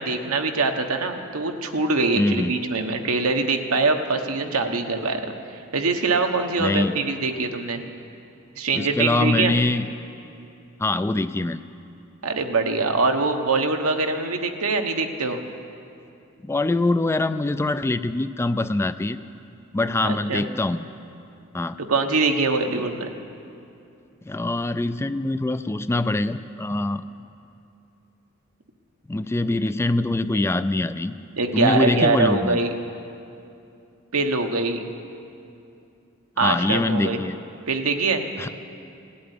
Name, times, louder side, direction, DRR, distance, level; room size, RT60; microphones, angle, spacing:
voice 1, 0.0-5.2 5.5-7.8 8.6-9.5 12.2-15.4 20.0-20.4 21.8-23.1 31.3-32.7 34.1-34.8 36.4-37.2 37.7-38.2, right 3 dB, 85° right, 4 dB, 1.2 m, -23 dB
voice 2, 2.2-2.5 6.6-6.9 8.7-9.9 10.8-11.6 16.4-19.2 19.7-20.8 21.5-21.8 24.3-27.0 29.1-31.1 31.5-32.6 36.4-37.4 38.4-38.5, left 2 dB, 10° left, 12 dB, 0.3 m, -23 dB
17.5 x 8.5 x 10.0 m, 2.6 s
head